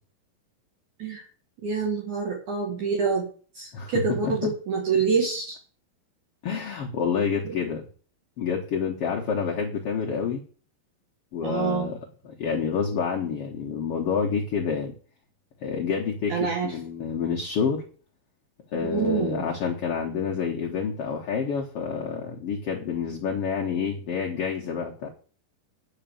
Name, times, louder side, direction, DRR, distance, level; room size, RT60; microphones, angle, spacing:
voice 1, 1.6-3.3 3.5-5.6 7.4-7.6 11.4-11.9 16.3-16.7 18.8-19.4, right 5 dB, 60° right, 1 dB, 2.6 m, -26 dB
voice 2, 3.7-4.3 6.4-7.9 8.4-10.4 11.3-12.0 12.2-14.9 15.6-17.8 18.7-25.1, left 6 dB, 80° left, 0 dB, 1.3 m, -28 dB
10.0 x 5.0 x 7.0 m, 0.42 s
omnidirectional pair, 4.4 m